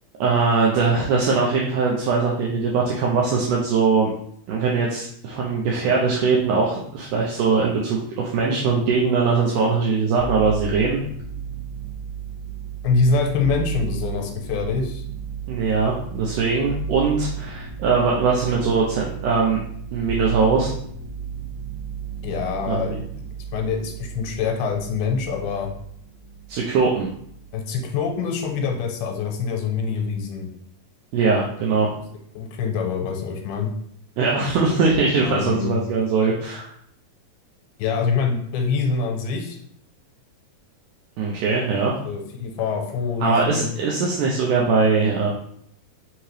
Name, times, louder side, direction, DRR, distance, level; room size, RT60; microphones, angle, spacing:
voice 1, 0.2-4.1 4.5-11.0 15.5-19.6 19.9-20.7 22.6-23.0 26.5-27.1 31.1-31.9 34.2-36.7 41.2-41.9 43.2-45.3, right 4 dB, 85° right, -3 dB, 1.8 m, -21 dB
sound 1, 10.2-27.6 27.9-28.7, right 8 dB, 45° right, 1.3 m, -34 dB
voice 2, 12.8-15.0 22.2-23.2 23.5-25.7 27.5-30.5 32.3-33.7 35.2-35.8 37.8-39.6 41.8-43.7, left 5 dB, 85° left, 2 dB, 2.5 m, -25 dB
5.6 x 2.8 x 3.1 m, 0.68 s
omnidirectional pair, 4.3 m